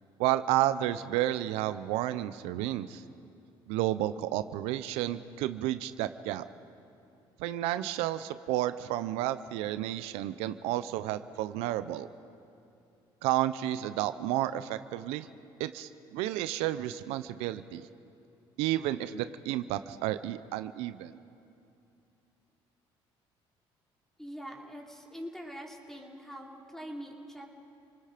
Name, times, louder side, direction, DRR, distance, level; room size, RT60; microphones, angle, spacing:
voice 1, 0.2-3.0 3.7-6.4 7.4-12.1 13.2-15.3 15.6-17.9 18.6-21.2, right 14 dB, 85° right, 12 dB, 0.6 m, -31 dB
voice 2, 24.2-27.5, equal, 5° left, 0 dB, 3.0 m, -43 dB
29.5 x 19.5 x 5.1 m, 2.7 s
cardioid pair, 95°, 10 cm